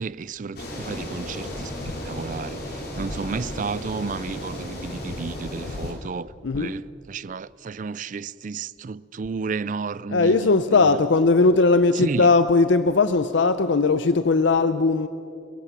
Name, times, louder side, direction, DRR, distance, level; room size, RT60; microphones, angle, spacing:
voice 1, 0.0-1.7 2.0-10.9 11.9-12.3, right 4 dB, 45° right, 0.4 m, -32 dB
sound 1, 0.6-5.9, left 1 dB, 55° left, 4.1 m, -34 dB
voice 2, 10.1-15.1, left 3 dB, 70° left, 0.6 m, -19 dB
30.0 x 16.5 x 5.9 m
head